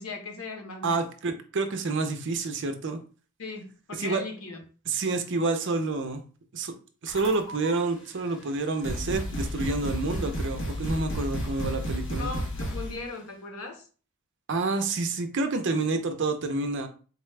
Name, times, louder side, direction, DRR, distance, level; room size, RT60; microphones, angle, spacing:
voice 1, 0.0-1.0 3.4-4.6 12.2-13.8, left 3 dB, 85° left, 3 dB, 1.0 m, -38 dB
voice 2, 0.8-3.0 4.0-4.2 4.9-6.2 6.5-6.7 7.0-12.3 14.5-16.9, right 3 dB, 60° right, 7 dB, 0.5 m, -28 dB
sound 1, 7.1-7.7 8.5-8.6 8.8-13.0, equal, 60° left, 1.0 m, -32 dB
4.1 x 2.2 x 3.2 m, 0.38 s
head